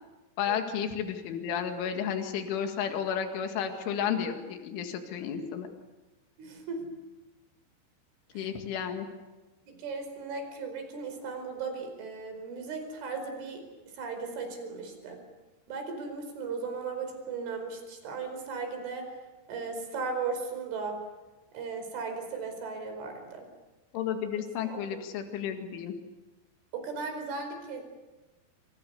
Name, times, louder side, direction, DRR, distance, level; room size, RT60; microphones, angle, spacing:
voice 1, 0.4-5.7 8.3-9.1 23.9-25.9, left 8 dB, 80° left, 5 dB, 4.6 m, -32 dB
voice 2, 6.4-7.0 8.4-8.5 9.7-13.6 14.0-15.2 15.7-19.1 19.5-21.0 21.5-23.5 24.6-24.8 26.7-27.8, right 4 dB, 80° right, 6 dB, 7.3 m, -36 dB
28.0 x 28.0 x 7.1 m, 1.1 s
omnidirectional pair, 5.5 m